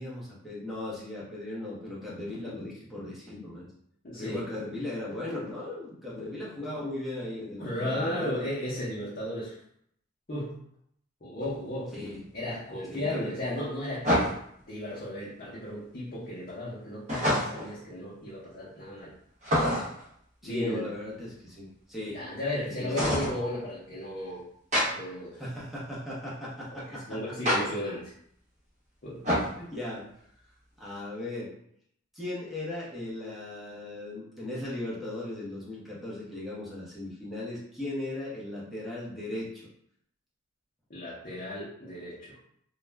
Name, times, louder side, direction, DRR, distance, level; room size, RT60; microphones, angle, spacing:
voice 1, 0.0-3.7 4.1-8.3 11.9-12.2 12.9-13.2 20.4-22.2 22.7-22.9 25.3-27.0 29.6-30.1 30.8-31.5 32.1-39.7, left 1 dB, ahead, -7 dB, 0.7 m, -37 dB
voice 2, 4.0-4.4 7.6-9.6 10.3-10.6 11.2-11.9 12.3-14.3 14.7-19.1 20.4-20.8 22.1-24.5 24.8-25.4 26.7-28.1 29.0-29.3 40.9-42.4, left 1 dB, 45° left, -8 dB, 0.6 m, -34 dB
sound 1, 11.4-11.5 14.0-14.6 17.1-17.8 19.4-20.1 23.0-23.4 24.7-24.9 27.5-27.6 29.2-29.6, equal, 35° right, 0.9 m, -26 dB
2.4 x 2.1 x 3.2 m, 0.69 s
head